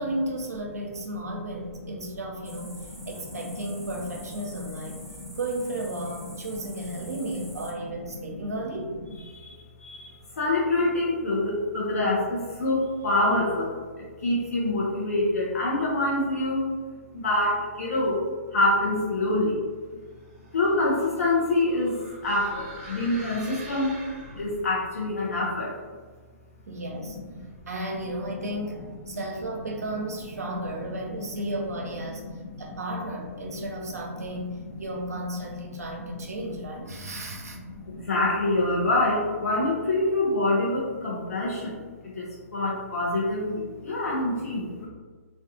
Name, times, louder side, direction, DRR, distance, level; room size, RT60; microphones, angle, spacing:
voice 1, 0.0-5.0 5.3-8.9 26.7-27.2 27.7-32.3 32.6-37.6, right 1 dB, 80° right, 0 dB, 0.5 m, -34 dB
sound 1, 2.4-7.7, right 1 dB, ahead, 0.4 m, -47 dB
voice 2, 4.9-5.3 6.7-7.0 7.4-7.5 7.8-7.9 8.2-8.6 9.3-16.7 17.1-18.2 18.5-19.6 19.9-20.0 20.5-22.0 22.2-23.9 24.3-25.7 27.3-27.5 31.2-31.5 32.2-32.7 33.5-33.6 34.7-34.8 37.1-37.2 37.7-41.7 42.1-42.2 42.5-44.9, left 2 dB, 75° left, -4 dB, 0.6 m, -26 dB
sound 2, 20.2-24.7, right 2 dB, 40° right, 0.8 m, -45 dB
2.4 x 2.2 x 2.7 m, 1.4 s
figure-of-eight pair, 125°, 8 cm